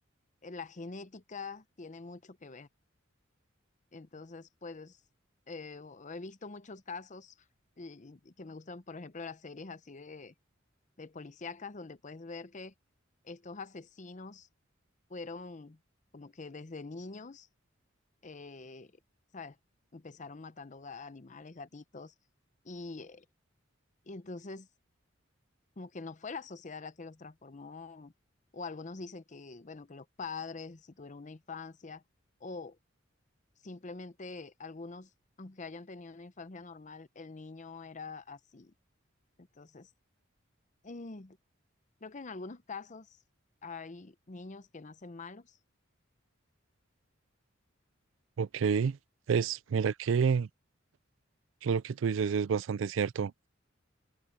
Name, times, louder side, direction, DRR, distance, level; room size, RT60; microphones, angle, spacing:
voice 1, 0.4-2.7 3.9-5.0 5.5-7.4 7.8-10.3 11.0-12.7 13.2-14.5 15.1-15.8 16.1-17.5 18.2-18.9 19.3-19.6 19.9-22.1 22.6-23.2 24.0-24.7 25.8-28.1 28.5-32.0 32.4-32.8 33.6-35.1 35.4-38.7 39.5-39.9 40.8-41.4 42.0-43.2 43.6-45.6, left 4 dB, 40° left, 0.7 m, -44 dB
voice 2, 48.4-49.0 49.3-50.5 51.6-53.5, right 6 dB, 75° right, 0.4 m, -29 dB
head